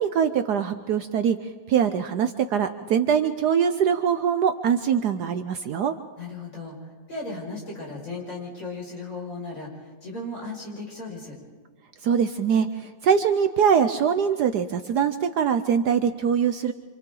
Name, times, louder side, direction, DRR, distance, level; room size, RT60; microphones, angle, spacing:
voice 1, 0.0-1.4 1.7-5.9 12.0-16.7, right 7 dB, 65° right, 9 dB, 1.2 m, -23 dB
voice 2, 6.2-11.4, left 2 dB, 40° left, -3 dB, 6.1 m, -36 dB
27.5 x 27.0 x 3.9 m, 1.5 s
omnidirectional pair, 2.1 m